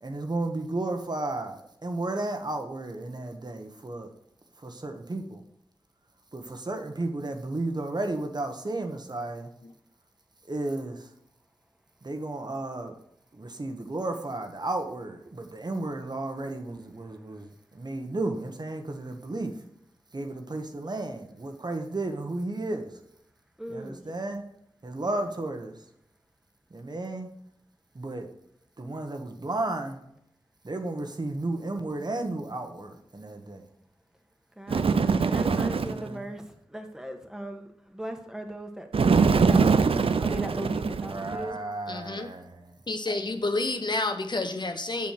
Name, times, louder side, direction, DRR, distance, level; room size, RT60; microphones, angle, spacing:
voice 1, 0.0-4.1 4.6-5.4 6.3-9.5 10.5-11.1 12.0-13.0 13.3-19.5 20.1-22.9 23.7-24.4 24.8-25.8 26.7-27.3 27.9-28.3 28.8-30.0 30.6-33.7 35.7-36.3 41.0-42.8, right 2 dB, 50° right, 5 dB, 1.2 m, -33 dB
voice 2, 23.6-24.0 25.0-25.2 34.6-39.7 40.2-41.6, right 1 dB, 5° right, 4 dB, 1.5 m, -38 dB
Bird, 34.7-36.1 38.9-41.4, right 5 dB, 80° right, 0.5 m, -23 dB
voice 3, 41.9-42.3 42.9-45.1, left 2 dB, 50° left, 6 dB, 0.9 m, -29 dB
7.4 x 6.2 x 5.8 m, 0.75 s
wide cardioid pair, 55°, 9 cm